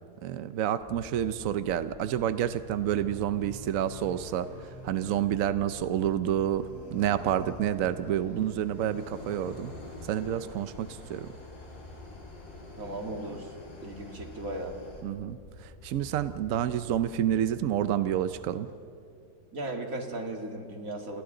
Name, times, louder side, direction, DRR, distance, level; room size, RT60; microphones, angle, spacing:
voice 1, 0.2-9.7 10.0-11.3 15.0-18.7, right 10 dB, 70° right, 12 dB, 0.8 m, -29 dB
sound 1, 0.8-18.5, left 2 dB, 50° left, 0.5 m, -50 dB
sound 2, 2.4-15.0, left 1 dB, 75° left, 4.1 m, -48 dB
voice 2, 12.8-13.5 13.8-14.8 19.5-21.2, right 2 dB, 45° right, 2 dB, 2.5 m, -36 dB
29.5 x 28.5 x 3.9 m, 2.4 s
omnidirectional pair, 2.1 m